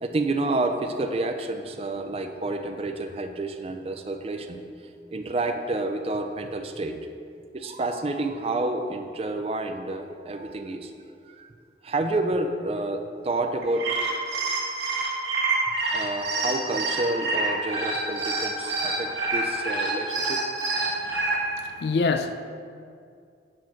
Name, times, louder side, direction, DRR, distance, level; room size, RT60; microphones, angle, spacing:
voice 1, 0.0-4.6 5.1-7.0 7.5-10.9 11.4-11.5 11.8-13.9 14.7-14.8 15.9-20.4, right 2 dB, 35° right, 0.4 m, -29 dB
sound 1, 13.6-21.4, right 3 dB, 80° right, 1.5 m, -27 dB
voice 2, 20.8-22.3, left 4 dB, 65° left, 0.3 m, -28 dB
7.6 x 3.0 x 6.1 m
head